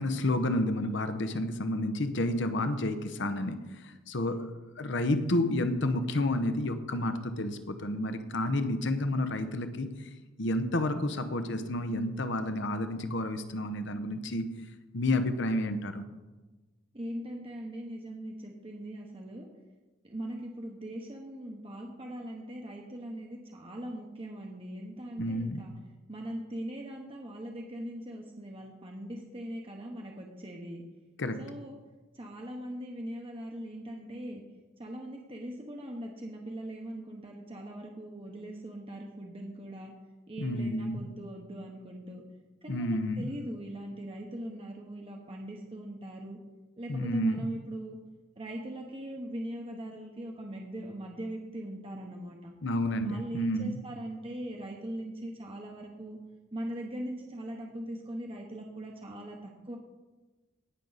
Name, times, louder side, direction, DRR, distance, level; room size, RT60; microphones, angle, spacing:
voice 1, 0.0-3.6 4.1-9.9 10.4-14.5 14.9-16.1 25.2-25.6 31.2-31.4 40.4-41.0 42.7-43.3 46.9-47.5 52.6-53.8, left 1 dB, 65° left, 9 dB, 1.0 m, -30 dB
voice 2, 16.9-19.5 20.0-25.7 26.1-30.8 31.4-31.8 32.1-34.4 34.8-39.9 40.3-42.2 42.6-46.4 46.8-48.0 48.4-52.5 53.0-56.2 56.5-59.8, right 1 dB, 30° right, 0 dB, 1.1 m, -40 dB
18.0 x 6.5 x 4.1 m, 1.2 s
head